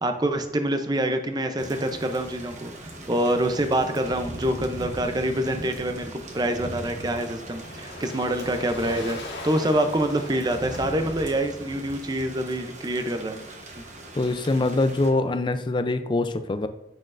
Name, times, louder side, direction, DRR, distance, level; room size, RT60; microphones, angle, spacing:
voice 1, 0.0-6.0 6.3-13.4, right 1 dB, 25° right, 7 dB, 0.5 m, -26 dB
Thunder / Rain, 1.6-15.1, right 1 dB, 45° right, 0.9 m, -40 dB
Waves surf, 6.1-11.8, left 2 dB, 65° left, 1.8 m, -42 dB
voice 2, 14.1-16.7, left 2 dB, 25° left, 10 dB, 0.4 m, -24 dB
8.6 x 6.2 x 2.5 m, 0.98 s
head